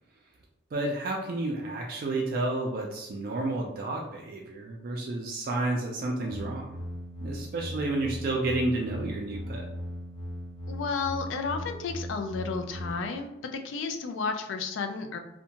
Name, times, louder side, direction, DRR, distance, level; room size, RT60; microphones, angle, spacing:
voice 1, 0.7-6.7 7.2-9.7, right 2 dB, 50° right, -1 dB, 0.3 m, -31 dB
sound 1, 6.3-12.9, equal, 30° left, 0.6 m, -38 dB
voice 2, 10.7-15.2, left 4 dB, 85° left, 6 dB, 0.3 m, -32 dB
2.6 x 2.1 x 2.8 m, 0.88 s
head